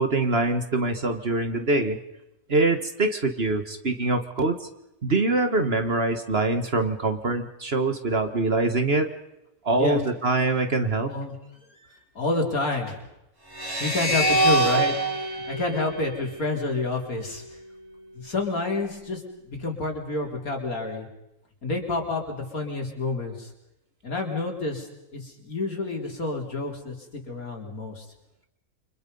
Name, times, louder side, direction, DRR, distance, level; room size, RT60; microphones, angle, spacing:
voice 1, 0.0-2.0 2.5-4.6 5.0-9.1 9.6-11.1, right 2 dB, 40° right, 7 dB, 1.6 m, -24 dB
voice 2, 11.0-11.3 12.2-13.0 13.8-17.4 18.2-21.1 21.6-23.5 24.0-24.9 25.1-26.9 27.3-28.0, left 2 dB, 65° left, 1 dB, 4.2 m, -29 dB
sound 1, 13.5-16.8, right 2 dB, 15° right, 3.6 m, -25 dB
29.5 x 25.5 x 5.5 m, 0.89 s
omnidirectional pair, 1.6 m